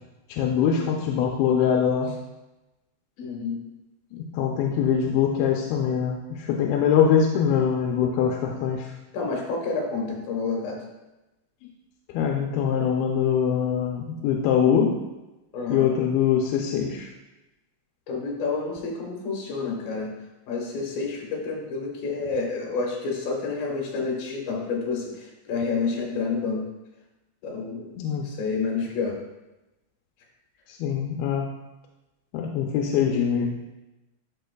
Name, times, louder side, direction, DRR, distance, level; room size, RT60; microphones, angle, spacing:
voice 1, 0.3-2.1 4.1-9.0 11.6-11.7 12.1-15.0 15.7-17.1 28.0-28.3 30.7-31.5 32.3-33.6, left 7 dB, 90° left, 1 dB, 2.5 m, -23 dB
voice 2, 3.2-3.6 9.1-10.9 15.5-15.9 18.1-20.1 20.5-26.6 27.4-27.9 28.2-29.2, left 4 dB, 75° left, -1 dB, 3.1 m, -29 dB
13.0 x 4.5 x 2.3 m, 1.0 s
omnidirectional pair, 4.3 m